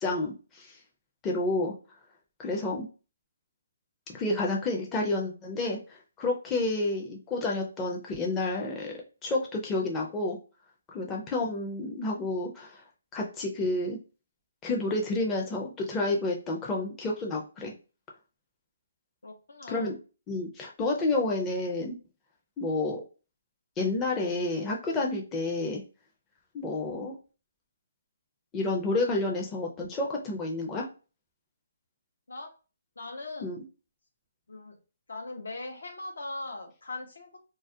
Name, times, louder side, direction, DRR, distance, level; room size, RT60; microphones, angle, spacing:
voice 1, 0.0-0.7 1.2-1.7 2.4-2.9 4.1-8.9 9.2-10.4 10.9-12.8 13.1-14.0 14.6-17.7 19.7-19.9 20.3-21.9 22.6-23.0 23.8-25.8 26.5-27.1 28.5-30.9 33.4-33.6, left 2 dB, 15° left, -1 dB, 0.5 m, -30 dB
voice 2, 19.2-19.9 32.3-32.5 33.0-33.6 34.5-34.8 35.1-37.4, left 2 dB, 80° left, 3 dB, 0.7 m, -40 dB
2.3 x 2.1 x 2.6 m, 0.33 s
hypercardioid pair, 145°, 0 cm